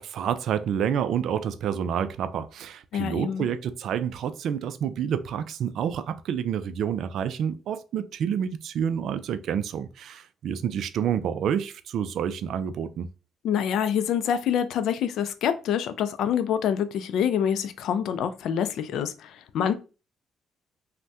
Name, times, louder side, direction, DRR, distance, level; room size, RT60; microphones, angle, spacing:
voice 1, 0.0-13.1, right 8 dB, 70° right, 0.3 m, -28 dB
voice 2, 2.9-3.5 13.4-19.7, left 8 dB, 75° left, 0.4 m, -26 dB
2.6 x 2.1 x 3.3 m
supercardioid pair, 65°, 0 cm